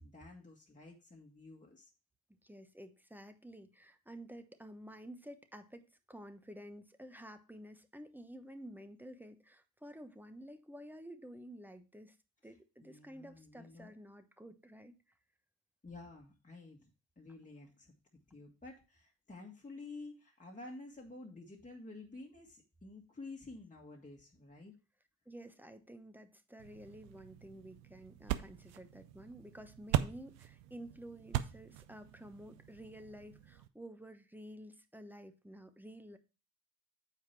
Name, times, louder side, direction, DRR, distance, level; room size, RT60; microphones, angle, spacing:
voice 1, 0.0-1.9 12.4-12.5 12.8-13.9 15.8-16.9 17.2-17.9 18.3-24.7, left 2 dB, 20° left, -1 dB, 1.6 m, -51 dB
voice 2, 2.4-5.8 6.1-12.2 12.4-14.9 25.3-36.2, equal, 5° right, 8 dB, 1.0 m, -51 dB
sound 1, 26.6-33.7, right 13 dB, 85° right, 0.5 m, -40 dB
7.4 x 4.8 x 4.4 m, 0.32 s
hypercardioid pair, 45°, 42 cm